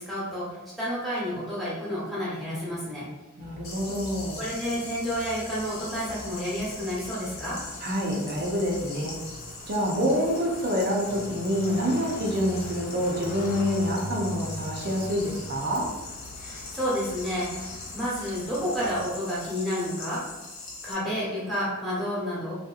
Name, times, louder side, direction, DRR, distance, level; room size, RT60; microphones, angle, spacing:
voice 1, 0.1-3.0 4.4-7.6 16.4-17.7 17.9-20.2 20.8-22.5, equal, ahead, -9 dB, 1.0 m, -30 dB
sound 1, 3.4-19.0, left 2 dB, 45° left, 0.3 m, -42 dB
voice 2, 3.4-4.4 7.8-9.2 9.7-15.9, equal, 45° right, -1 dB, 0.6 m, -27 dB
sound 2, 3.6-20.9, left 3 dB, 70° left, 0.8 m, -41 dB
3.3 x 2.8 x 2.4 m, 1.1 s
head